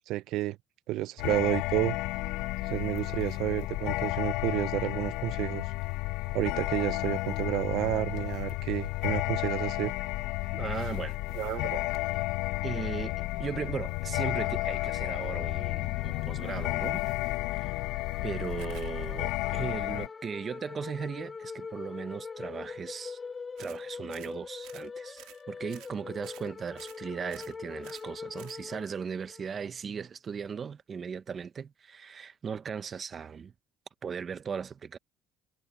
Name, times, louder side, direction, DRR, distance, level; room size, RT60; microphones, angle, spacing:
voice 1, 0.1-0.6 0.9-2.0 2.6-5.7 6.3-9.9 11.3-11.9, right 16 dB, 70° right, 0.3 m, -30 dB
sound 1, 1.2-20.1, left 20 dB, 85° left, 0.3 m, -32 dB
voice 2, 10.5-11.2 12.6-17.0 17.5-17.8 18.2-23.2 23.6-33.5 34.0-35.0, right 6 dB, 30° right, 0.8 m, -37 dB
sound 2, 14.2-29.5, left 5 dB, 25° left, 3.7 m, -44 dB
sound 3, 18.6-18.9 23.6-23.8 24.1-24.3 24.6-24.9 25.2-25.4 25.7-25.9 26.2-26.5 26.8-27.0 27.3-27.6 27.8-28.1 28.4-28.6, right 17 dB, 85° right, 1.7 m, -52 dB
cardioid pair, 135°, 0 cm